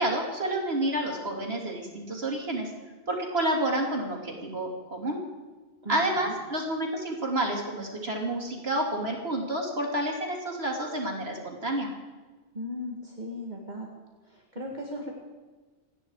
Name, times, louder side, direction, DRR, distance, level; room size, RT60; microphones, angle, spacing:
voice 1, 0.0-2.7 3.1-5.2 5.9-11.9, right 1 dB, 75° right, 0 dB, 3.4 m, -29 dB
voice 2, 5.8-6.3 12.5-13.9 14.2-15.1, left 1 dB, 45° right, -1 dB, 2.3 m, -37 dB
28.5 x 10.0 x 4.9 m, 1.3 s
omnidirectional pair, 1.0 m